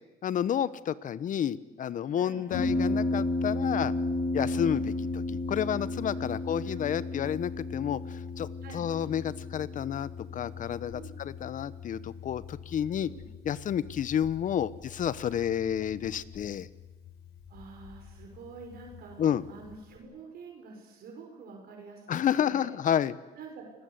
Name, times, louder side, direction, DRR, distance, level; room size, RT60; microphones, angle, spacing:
voice 1, 0.2-3.9 4.3-8.5 8.7-13.1 13.4-16.7 19.2-19.4 22.1-23.2, left 9 dB, 50° left, 17 dB, 1.1 m, -30 dB
Harp, 2.5-20.0, left 2 dB, 80° left, 5.7 m, -35 dB
voice 2, 6.1-7.0 8.6-8.8 10.9-11.2 13.0-13.3 15.3-15.5 17.5-22.7 23.4-23.7, right 4 dB, 65° right, 2 dB, 5.7 m, -48 dB
30.0 x 20.0 x 8.3 m, 1.2 s
cardioid pair, 110°, 17 cm